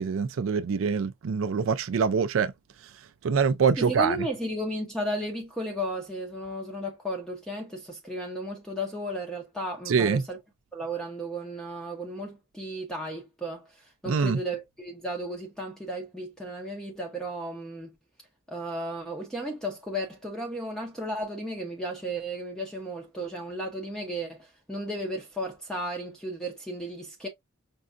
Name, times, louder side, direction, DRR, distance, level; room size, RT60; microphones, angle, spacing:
voice 1, 0.0-2.5 3.2-4.2 9.9-10.2 14.1-14.4, right 5 dB, 75° right, 0.4 m, -24 dB
voice 2, 3.8-10.4 10.7-17.9 18.5-27.3, right 1 dB, 5° left, 0.8 m, -34 dB
5.3 x 2.4 x 2.4 m
head